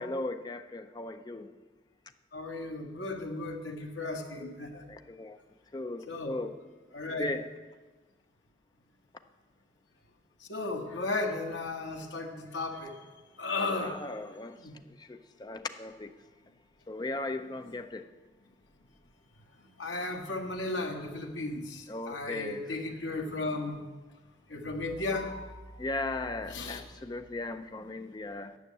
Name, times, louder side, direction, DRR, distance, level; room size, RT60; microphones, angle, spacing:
voice 1, 0.0-1.5 4.9-5.4 5.7-6.6 7.2-7.5 13.8-14.6 15.0-16.1 16.9-18.1 21.9-22.6 25.8-28.6, left 2 dB, 20° left, 8 dB, 0.4 m, -37 dB
voice 2, 2.3-4.8 6.1-6.4 6.9-7.3 10.5-12.9 13.4-13.9 14.6-14.7 19.8-23.8 24.5-25.8 26.5-26.8, left 2 dB, 70° left, 2 dB, 1.3 m, -35 dB
9.3 x 6.5 x 8.2 m, 1.2 s
head